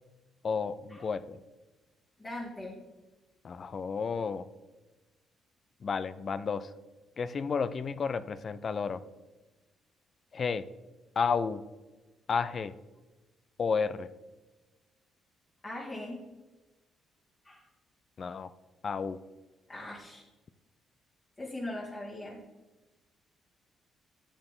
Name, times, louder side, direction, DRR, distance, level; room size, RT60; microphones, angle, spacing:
voice 1, 0.4-1.4 3.4-4.4 5.8-6.7 7.2-9.0 10.3-10.7 11.2-11.6 12.3-12.7 13.6-14.1 18.2-18.5 18.8-19.2, left 5 dB, 45° left, 14 dB, 0.5 m, -31 dB
voice 2, 2.2-2.8 15.6-16.2 17.4-17.6 19.7-20.2 21.4-22.4, left 1 dB, 30° left, -6 dB, 2.2 m, -40 dB
10.0 x 7.8 x 3.8 m, 1.2 s
cardioid pair, 90°, 0 cm